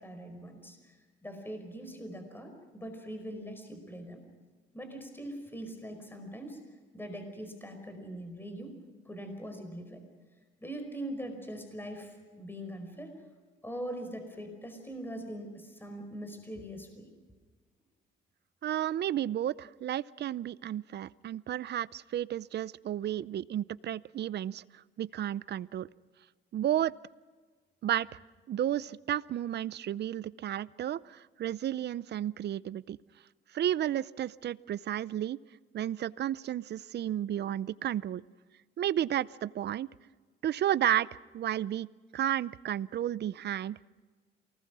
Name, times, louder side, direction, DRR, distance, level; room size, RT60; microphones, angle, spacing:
voice 1, 0.0-4.2 4.7-6.6 6.9-8.7 9.0-10.0 10.6-13.2 13.6-17.1, right 1 dB, 10° left, 6 dB, 4.9 m, -42 dB
voice 2, 18.6-25.9 26.5-26.9 27.8-28.2 28.5-33.0 33.5-35.4 35.7-38.2 38.8-39.9 40.4-41.9 42.1-43.8, right 11 dB, 60° right, 20 dB, 0.6 m, -32 dB
28.0 x 19.5 x 6.2 m, 1.4 s
cardioid pair, 90°, 20 cm